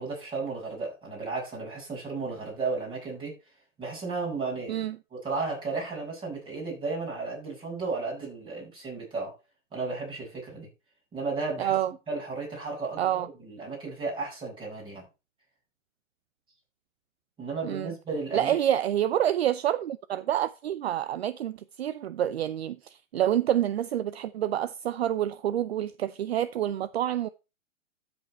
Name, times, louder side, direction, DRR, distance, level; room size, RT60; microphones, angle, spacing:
voice 1, 0.0-3.3 3.8-4.9 5.1-9.3 9.7-10.7 11.1-11.7 12.1-15.0 17.4-18.6, right 3 dB, 10° right, 6.9 m, -34 dB
voice 2, 11.6-11.9 13.0-13.3 17.6-17.9 18.3-27.3, right 11 dB, 55° right, 0.6 m, -28 dB
13.0 x 5.4 x 4.3 m
hypercardioid pair, 160°, 39 cm